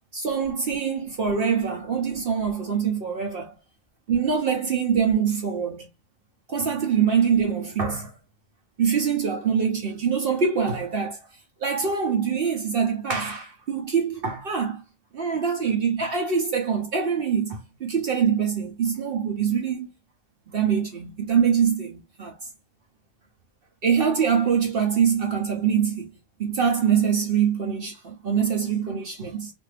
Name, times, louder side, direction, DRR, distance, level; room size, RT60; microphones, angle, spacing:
voice 1, 0.1-3.5 4.1-5.9 6.5-8.1 8.8-11.2 11.6-14.8 15.1-19.9 20.5-22.4 23.8-26.1 26.4-29.5, right 7 dB, 55° right, 0.8 m, -24 dB
2.6 x 2.5 x 3.1 m
omnidirectional pair, 1.3 m